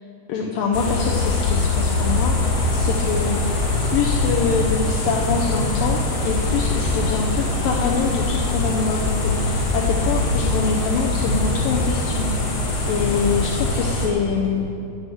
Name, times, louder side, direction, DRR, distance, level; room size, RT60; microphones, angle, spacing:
voice 1, 0.3-3.5 3.8-12.6 12.9-14.7, left 5 dB, 85° left, 0 dB, 1.9 m, -25 dB
sound 1, 0.7-14.1, left 2 dB, 55° left, 3.2 m, -22 dB
9.9 x 8.6 x 8.4 m, 2.6 s
omnidirectional pair, 5.0 m